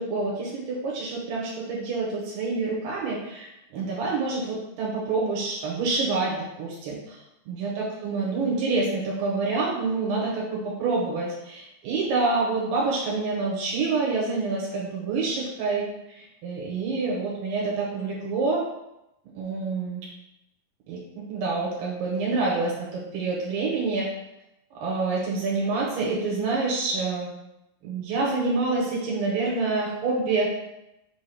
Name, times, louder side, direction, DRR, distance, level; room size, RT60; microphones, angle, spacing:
voice 1, 0.0-7.2 7.5-15.8 16.2-18.6 19.3-20.1 20.9-24.1 24.8-27.3 27.8-30.5, right 3 dB, 85° right, -4 dB, 2.5 m, -27 dB
5.5 x 2.1 x 4.3 m, 0.90 s
omnidirectional pair, 4.1 m